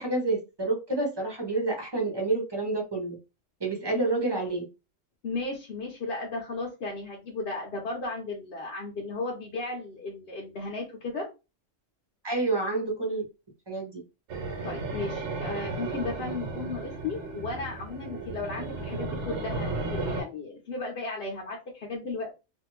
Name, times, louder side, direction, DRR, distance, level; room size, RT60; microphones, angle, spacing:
voice 1, 0.0-3.1 3.6-4.6 12.2-13.2 13.7-14.0, right 2 dB, 25° right, 0 dB, 0.8 m, -28 dB
voice 2, 5.2-11.3 14.6-22.3, left 3 dB, 55° left, -2 dB, 0.9 m, -35 dB
sound 1, 14.3-20.2, right 3 dB, 65° right, 1.0 m, -34 dB
2.6 x 2.5 x 3.0 m, 0.28 s
omnidirectional pair, 1.3 m